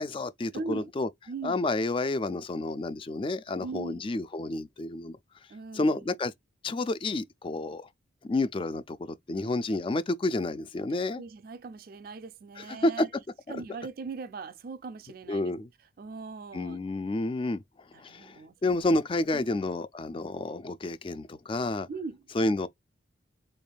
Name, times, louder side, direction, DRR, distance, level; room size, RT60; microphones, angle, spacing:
voice 1, 0.0-1.1 1.4-5.2 5.7-6.3 6.6-7.9 8.2-11.2 12.6-13.1 15.3-15.7 16.5-17.6 18.0-21.9 22.3-22.7, left 2 dB, 25° left, 0.3 m, -30 dB
voice 2, 0.5-0.9 1.3-1.6 3.6-4.1 5.5-6.1 10.9-13.1 13.5-15.5 16.0-16.8 17.9-18.8 19.3-19.5 21.9-22.3, right 4 dB, 50° right, 0.4 m, -40 dB
4.0 x 3.4 x 2.3 m
head